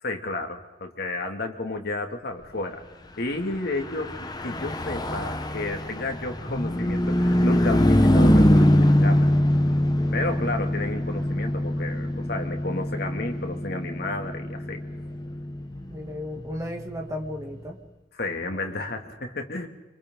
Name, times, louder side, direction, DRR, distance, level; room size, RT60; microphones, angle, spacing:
voice 1, 0.0-2.8 3.2-9.3 10.1-14.8 18.2-19.7, left 2 dB, 55° left, 3 dB, 2.4 m, -32 dB
Car passing by / Truck, 3.7-17.4, left 1 dB, 20° left, 1.0 m, -23 dB
voice 2, 9.9-10.5 15.9-17.8 18.5-18.8, left 1 dB, 15° right, 1 dB, 2.5 m, -35 dB
27.0 x 26.5 x 3.9 m, 1.2 s
head